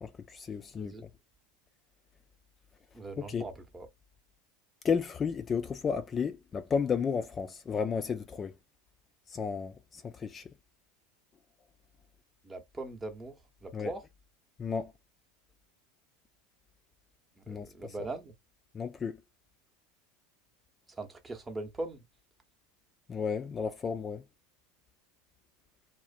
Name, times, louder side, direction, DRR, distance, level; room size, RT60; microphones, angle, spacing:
voice 1, 0.0-0.9 3.3-3.5 4.8-8.5 9.3-10.5 13.7-13.9 14.6-14.9 17.5-17.9 18.7-19.2 23.1-24.2, left 6 dB, 30° left, 0.3 m, -33 dB
voice 2, 2.9-3.9 12.4-13.3 13.6-14.0 17.5-18.3 20.9-22.0, right 2 dB, 15° right, 0.7 m, -40 dB
2.4 x 2.0 x 2.5 m
hypercardioid pair, 80°, 0 cm